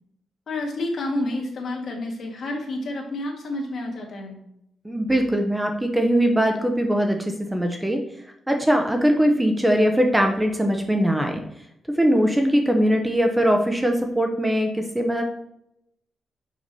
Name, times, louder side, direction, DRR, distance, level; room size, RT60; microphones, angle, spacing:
voice 1, 0.5-4.4, left 1 dB, 55° left, 1 dB, 1.8 m, -29 dB
voice 2, 4.8-8.0 8.5-11.4 11.9-15.2, equal, 5° right, 4 dB, 0.7 m, -21 dB
6.1 x 5.8 x 4.0 m, 0.77 s
wide cardioid pair, 150°, 0 cm